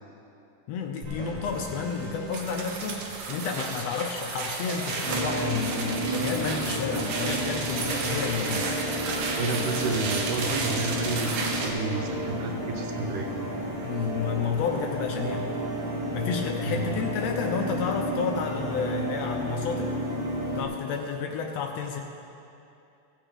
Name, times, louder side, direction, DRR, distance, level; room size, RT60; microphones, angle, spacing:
voice 1, 0.7-8.7 13.8-15.5 16.1-19.9 20.6-22.0, left 6 dB, 75° left, 3 dB, 1.5 m, -31 dB
sound 1, 1.0-3.8, right 3 dB, 45° right, 2.0 m, -40 dB
sound 2, 2.3-11.7, right 4 dB, 70° right, 2.3 m, -32 dB
sound 3, 5.0-20.6, equal, 25° right, 2.6 m, -31 dB
voice 2, 9.4-13.3 13.6-13.7 16.6-17.0, right 4 dB, 90° right, 3 dB, 2.6 m, -31 dB
16.5 x 7.4 x 5.0 m, 2.7 s
omnidirectional pair, 3.6 m